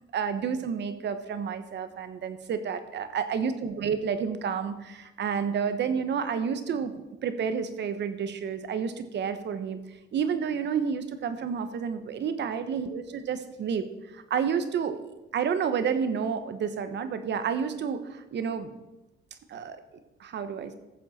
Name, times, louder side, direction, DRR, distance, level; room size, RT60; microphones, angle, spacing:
voice 1, 0.1-9.8 10.1-15.0 15.3-18.8 19.5-19.8 20.2-20.8, right 6 dB, 60° right, 10 dB, 1.1 m, -30 dB
14.0 x 7.4 x 4.3 m, 1.0 s
cardioid pair, 90°, 20 cm